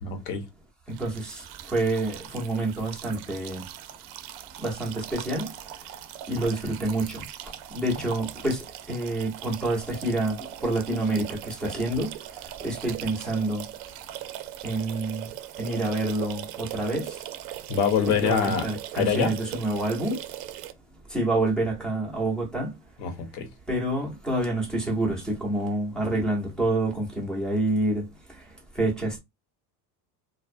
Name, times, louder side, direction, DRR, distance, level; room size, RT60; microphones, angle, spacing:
voice 1, 0.0-0.5 17.7-18.6 19.0-19.3 23.0-23.5, left 6 dB, 90° left, 0.9 m, -25 dB
voice 2, 0.9-3.6 4.6-5.5 6.3-7.2 7.7-10.4 10.6-12.1 12.6-13.6 14.6-15.3 15.6-17.2 18.1-20.2 21.1-22.7 23.7-28.0 28.8-29.2, right 2 dB, ahead, 0.6 m, -27 dB
sound 1, 0.9-20.7, right 13 dB, 90° right, 0.5 m, -40 dB
2.4 x 2.1 x 2.4 m
cardioid pair, 150°, 45 cm